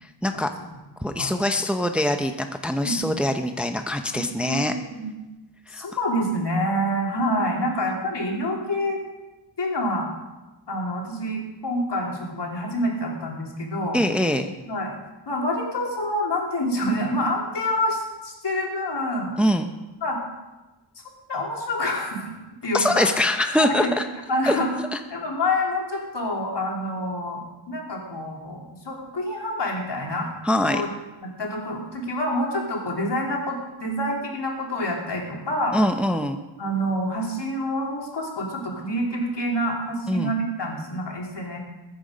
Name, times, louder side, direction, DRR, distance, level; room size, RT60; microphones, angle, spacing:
voice 1, 1.0-4.7 5.7-5.9 13.9-14.5 19.4-19.7 22.7-24.0 24.5-24.6 24.9-25.0 30.4-30.8 35.7-36.4 40.1-40.3, left 1 dB, 5° right, 6 dB, 0.7 m, -23 dB
voice 2, 4.1-5.1 5.7-9.0 9.6-10.1 10.7-14.0 14.6-14.9 15.3-19.3 20.0-20.2 21.3-22.3 22.6-23.0 23.6-23.9 24.3-24.7 25.1-30.3 30.7-30.9 31.2-35.8 36.6-41.6, left 1 dB, 65° left, -1 dB, 3.4 m, -27 dB
21.0 x 9.5 x 5.1 m, 1.1 s
wide cardioid pair, 130°, 45 cm